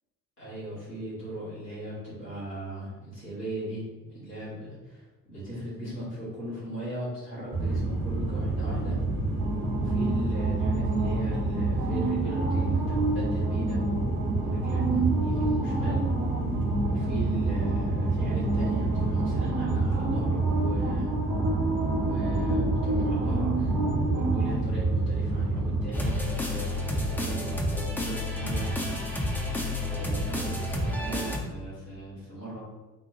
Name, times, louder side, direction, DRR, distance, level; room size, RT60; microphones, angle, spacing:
voice 1, 0.4-9.0 9.7-14.8 15.2-16.0 16.8-21.1 22.0-23.7 24.1-29.0 29.7-32.6, right 1 dB, 90° left, -11 dB, 1.3 m, -38 dB
sound 1, 7.5-25.9, right 2 dB, 50° right, 1.1 m, -26 dB
sound 2, 25.9-31.4, left 1 dB, 5° left, 0.4 m, -30 dB
4.1 x 2.2 x 2.7 m, 1.1 s
figure-of-eight pair, 45°, 46 cm